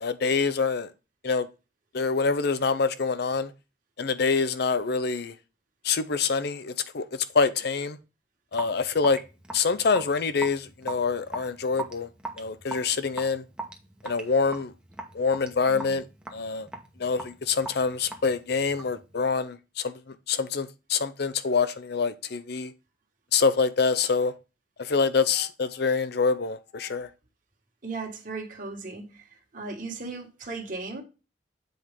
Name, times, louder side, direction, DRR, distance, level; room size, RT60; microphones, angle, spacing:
voice 1, 0.0-0.9 1.2-1.5 1.9-3.5 4.0-5.3 5.8-8.0 8.5-9.2 9.5-12.1 12.4-13.4 14.0-14.7 15.1-16.1 16.3-16.7 17.0-19.9 20.3-22.7 23.3-24.3 24.8-27.1, left 5 dB, 60° left, 0.6 m, -26 dB
Raindrop / Drip, 8.5-19.0, right 2 dB, 5° right, 1.0 m, -40 dB
voice 2, 15.7-16.0 27.8-29.3 29.5-31.0, right 3 dB, 45° right, 1.8 m, -37 dB
7.9 x 4.7 x 3.5 m
head